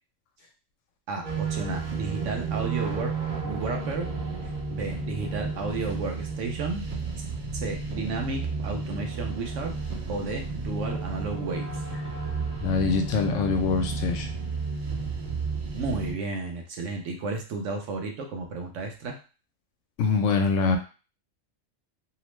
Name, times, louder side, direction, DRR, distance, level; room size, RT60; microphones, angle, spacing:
voice 1, 1.1-3.1 3.4-4.1 4.7-6.8 7.1-7.2 7.5-9.7 10.1-11.8 15.7-19.2, right 3 dB, 75° right, 3 dB, 1.0 m, -33 dB
sound 1, 1.2-16.1, right 4 dB, 45° right, 0.8 m, -32 dB
voice 2, 12.6-14.3 20.0-20.8, left 4 dB, 80° left, 5 dB, 0.9 m, -24 dB
2.8 x 2.0 x 3.1 m, 0.34 s
omnidirectional pair, 1.3 m